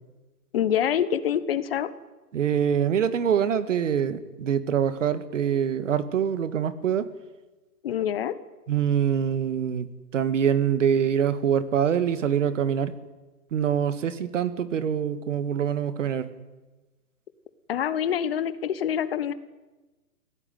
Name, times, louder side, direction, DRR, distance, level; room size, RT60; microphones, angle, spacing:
voice 1, 0.5-1.9 7.8-8.3 17.7-19.3, left 9 dB, 40° left, 15 dB, 1.2 m, -26 dB
voice 2, 2.3-7.1 8.7-9.9 10.1-13.0 13.5-16.3, right 8 dB, 50° right, 13 dB, 1.9 m, -24 dB
24.5 x 16.5 x 9.4 m, 1.2 s
hypercardioid pair, 150°, 46 cm